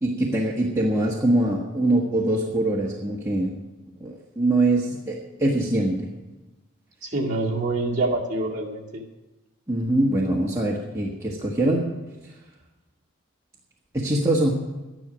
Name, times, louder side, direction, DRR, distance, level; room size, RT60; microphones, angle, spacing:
voice 1, 0.0-3.5 4.0-6.1 9.7-11.9 13.9-14.6, right 1 dB, 15° right, -4 dB, 1.3 m, -23 dB
voice 2, 7.0-9.0, right 2 dB, 35° right, -4 dB, 2.3 m, -26 dB
12.0 x 10.5 x 6.2 m, 1.1 s
head